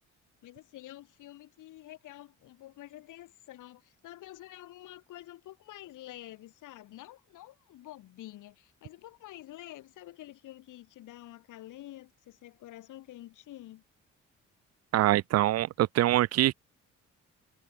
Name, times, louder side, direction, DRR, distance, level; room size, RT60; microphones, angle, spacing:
voice 1, 0.4-13.8, left 15 dB, 85° left, 4.3 m, -48 dB
voice 2, 14.9-16.5, right 14 dB, 55° right, 0.5 m, -24 dB
cardioid pair, 90°, 30 cm